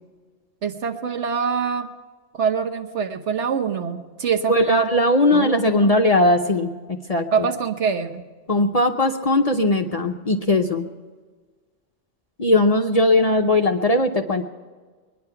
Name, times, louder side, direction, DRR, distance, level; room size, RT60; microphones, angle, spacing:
voice 1, 0.6-1.9 2.3-4.9 5.3-5.9 7.3-8.2, right 6 dB, 70° right, 6 dB, 1.2 m, -24 dB
voice 2, 4.5-7.5 8.5-10.9 12.4-14.4, left 2 dB, 40° left, 4 dB, 0.7 m, -19 dB
22.5 x 10.5 x 5.8 m, 1.4 s
omnidirectional pair, 1.3 m